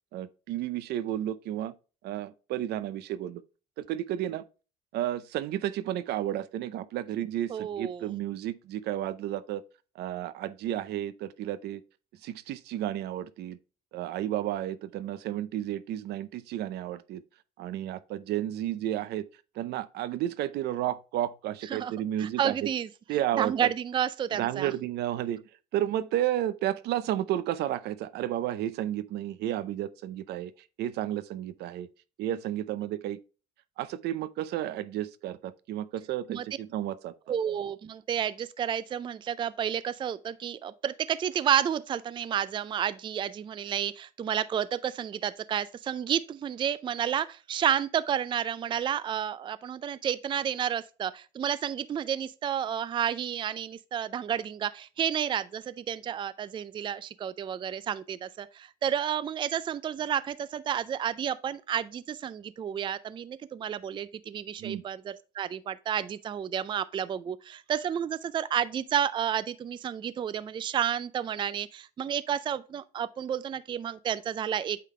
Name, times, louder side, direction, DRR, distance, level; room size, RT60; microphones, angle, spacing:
voice 1, 0.1-1.7 2.0-3.4 3.8-4.4 4.9-9.6 10.0-11.8 12.2-13.6 13.9-17.2 17.6-19.3 19.6-22.5 23.1-23.7 24.4-25.4 25.7-30.5 30.8-31.9 32.2-33.2 33.8-37.1 64.6-64.8, right 12 dB, 75° right, 0.6 m, -32 dB
voice 2, 7.5-8.1 21.6-21.9 22.2-22.9 23.4-24.7 36.3-36.5 37.3-74.8, right 9 dB, 30° right, 0.3 m, -31 dB
8.3 x 3.8 x 3.2 m
cardioid pair, 110°, 17 cm